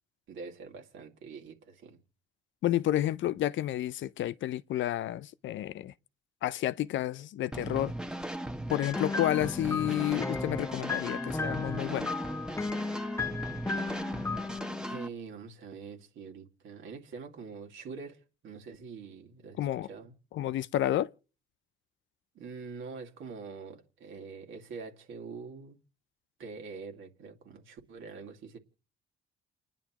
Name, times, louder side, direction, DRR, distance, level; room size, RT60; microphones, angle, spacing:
voice 1, 0.3-2.0 14.8-20.1 22.3-25.8 26.4-28.6, right 5 dB, 75° right, 2.3 m, -45 dB
voice 2, 2.6-5.9 6.4-7.9 8.7-12.1 19.6-19.9 20.3-21.1, left 13 dB, 70° left, 0.6 m, -30 dB
sound 1, 7.5-15.1, right 1 dB, 5° right, 1.1 m, -38 dB
sound 2, 8.7-15.0, left 4 dB, 15° left, 0.6 m, -35 dB
29.5 x 10.5 x 3.0 m
cardioid pair, 90°, 20 cm